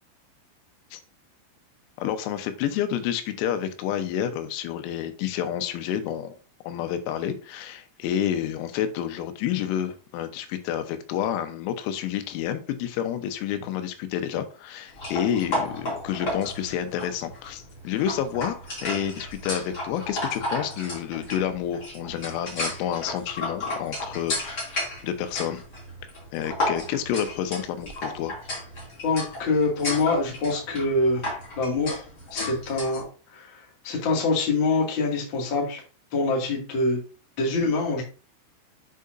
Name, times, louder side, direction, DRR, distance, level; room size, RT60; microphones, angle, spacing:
voice 1, 2.0-6.4 6.7-18.6 18.8-25.6 26.3-28.3, left 10 dB, 90° left, 8 dB, 3.6 m, -29 dB
sound 1, 14.9-33.0, left 1 dB, 40° left, 1.5 m, -33 dB
voice 2, 29.0-31.2 31.6-32.0 32.3-33.0 33.3-33.6 33.8-35.8 36.1-37.0 37.4-38.0, left 3 dB, 65° left, -2 dB, 1.2 m, -25 dB
7.6 x 6.6 x 2.5 m, 0.36 s
omnidirectional pair, 6.0 m